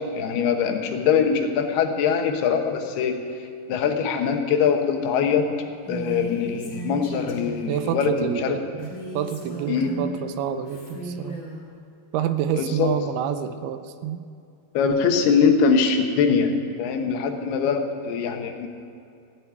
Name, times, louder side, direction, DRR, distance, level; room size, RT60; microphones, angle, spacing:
voice 1, 0.1-3.2 3.7-5.5 5.9-8.6 9.7-10.0 12.5-12.9 14.7-16.5 16.8-18.7, left 6 dB, 80° left, 5 dB, 3.1 m, -22 dB
Female speech woman speaking, 5.8-7.8 8.8-10.2 10.6-11.6, right 3 dB, 25° left, 2.7 m, -36 dB
voice 2, 7.7-8.9 9.2-11.4 12.1-14.2, right 9 dB, 80° right, 10 dB, 2.6 m, -28 dB
15.0 x 8.0 x 9.2 m, 2.5 s
omnidirectional pair, 4.5 m